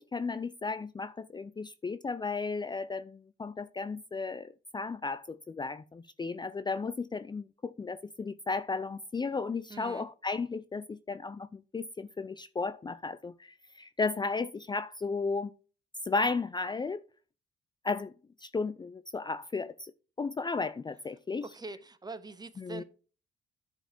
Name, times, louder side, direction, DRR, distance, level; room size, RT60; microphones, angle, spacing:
voice 1, 0.0-15.5 16.0-17.0 17.8-18.1 18.4-19.9 20.2-21.4 22.6-22.8, left 4 dB, 20° left, 0.5 m, -34 dB
voice 2, 9.7-10.1 21.4-22.8, right 3 dB, 20° right, 0.9 m, -43 dB
10.5 x 4.9 x 4.4 m
cardioid pair, 90°, 20 cm